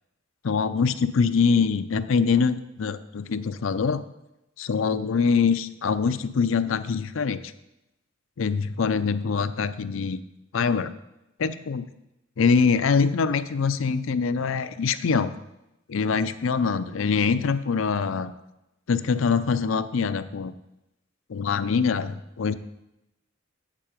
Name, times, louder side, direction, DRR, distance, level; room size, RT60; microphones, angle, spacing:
voice 1, 0.4-4.0 4.6-7.4 8.4-10.2 10.5-10.9 11.4-11.9 12.4-15.3 15.9-18.3 18.9-20.5 21.3-22.5, left 5 dB, 70° left, 13 dB, 0.5 m, -24 dB
7.6 x 7.4 x 5.0 m, 0.90 s
head